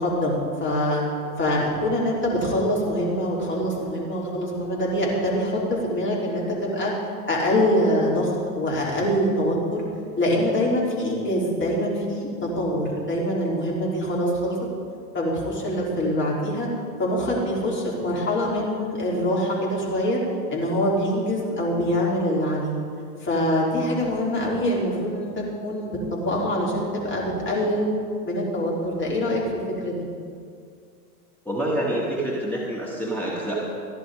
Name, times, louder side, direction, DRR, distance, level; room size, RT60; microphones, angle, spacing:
voice 1, 0.0-1.0 1.4-6.9 7.3-9.8 10.2-12.3 12.6-14.5 15.1-16.7 17.0-20.2 20.5-22.7 23.2-27.9 28.2-29.4 29.8-29.9, equal, 25° left, -4 dB, 4.2 m, -24 dB
voice 2, 31.5-33.6, right 1 dB, 5° left, -5 dB, 2.2 m, -27 dB
15.0 x 10.5 x 5.1 m, 2.3 s
hypercardioid pair, 95°, 48 cm